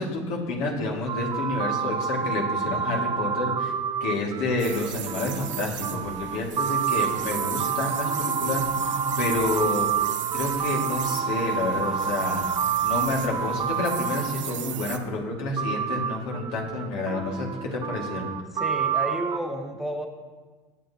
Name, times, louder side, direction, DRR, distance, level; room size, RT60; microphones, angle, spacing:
voice 1, 0.0-3.7 4.0-9.9 10.3-12.4 12.8-18.3, left 2 dB, 70° left, -1 dB, 2.3 m, -29 dB
sound 1, 1.1-14.9 15.6-19.4, right 7 dB, 30° right, 0.5 m, -28 dB
sound 2, 4.6-15.0, right 9 dB, 90° right, 0.7 m, -35 dB
voice 2, 18.5-20.1, equal, ahead, 3 dB, 1.0 m, -31 dB
18.0 x 7.4 x 2.9 m, 1.4 s
hypercardioid pair, 85°, 16 cm